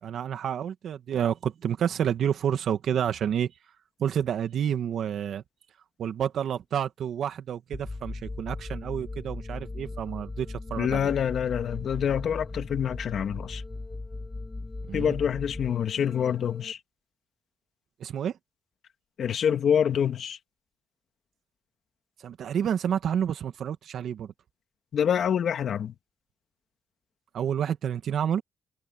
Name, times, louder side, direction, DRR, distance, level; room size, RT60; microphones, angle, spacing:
voice 1, 0.0-3.5 4.0-5.4 6.0-11.0 14.9-15.1 18.0-18.4 22.2-24.3 27.3-28.4, right 9 dB, 65° right, 2.1 m, -29 dB
sound 1, 7.7-16.7, left 2 dB, 20° left, 2.2 m, -38 dB
voice 2, 10.8-13.6 14.9-16.8 19.2-20.4 24.9-25.9, left 8 dB, 60° left, 2.1 m, -26 dB
cardioid pair, 90°, 0 cm